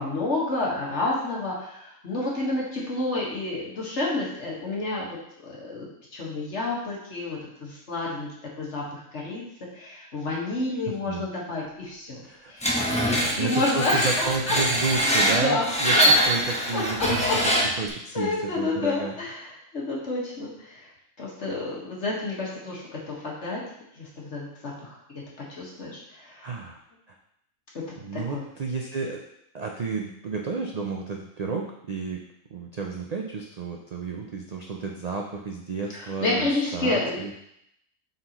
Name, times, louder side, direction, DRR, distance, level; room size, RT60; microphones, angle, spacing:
voice 1, 0.0-8.3 8.6-9.4 9.7-12.2 12.5-14.6 15.4-15.6 16.0-16.1 16.7-17.1 17.6-17.8 18.1-20.9 21.2-23.6 24.0-25.0 25.6-26.5 27.7-27.8 28.1-28.4 36.0-37.2, left 2 dB, 55° left, -4 dB, 1.8 m, -30 dB
voice 2, 10.9-11.2 12.2-12.5 13.4-19.1 26.4-26.8 28.0-29.2 29.5-32.2 32.5-36.5 36.7-37.3, right 4 dB, 80° right, 0 dB, 0.3 m, -31 dB
Screech, 12.6-17.9, equal, 5° left, 0.7 m, -23 dB
7.6 x 4.1 x 3.0 m, 0.76 s
omnidirectional pair, 1.4 m